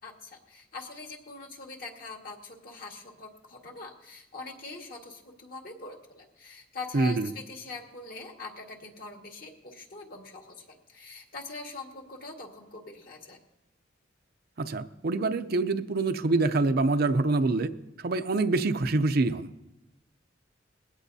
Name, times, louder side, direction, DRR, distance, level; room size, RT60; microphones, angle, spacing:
voice 1, 0.0-13.4, left 3 dB, 50° left, 0 dB, 1.9 m, -43 dB
voice 2, 6.9-7.3 14.6-17.7 18.0-19.5, right 3 dB, 55° right, 10 dB, 0.6 m, -25 dB
20.5 x 16.5 x 2.7 m, 0.95 s
head